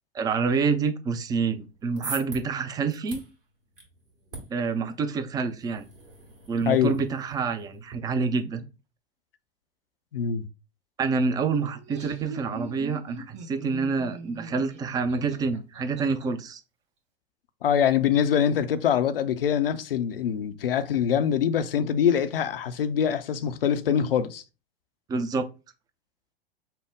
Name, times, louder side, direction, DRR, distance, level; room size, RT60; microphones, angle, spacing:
voice 1, 0.1-3.2 4.5-5.9 6.5-8.7 11.0-16.6 25.1-25.5, right 5 dB, 15° right, 0.4 m, -27 dB
sound 1, 1.6-7.9, right 3 dB, 60° right, 2.0 m, -44 dB
voice 2, 6.6-7.0 10.1-10.5 17.6-24.4, left 8 dB, 70° left, 0.5 m, -24 dB
Laughter, 11.7-16.2, right 2 dB, 40° right, 1.4 m, -41 dB
5.6 x 2.0 x 3.6 m
figure-of-eight pair, 90°, 30 cm